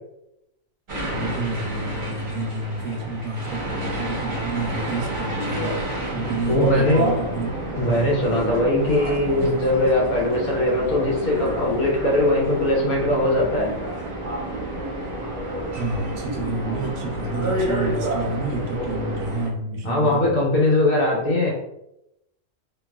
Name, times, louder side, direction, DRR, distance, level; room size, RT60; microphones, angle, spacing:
sound 1, 0.9-19.5, right 1 dB, 40° right, 0.8 m, -29 dB
voice 1, 1.0-7.9 15.8-20.3, right 2 dB, 70° right, 2 dB, 0.9 m, -29 dB
voice 2, 6.5-7.0 7.8-13.7 19.8-21.5, left 1 dB, 75° left, -3 dB, 1.3 m, -20 dB
3.0 x 2.3 x 2.3 m, 0.84 s
omnidirectional pair, 1.6 m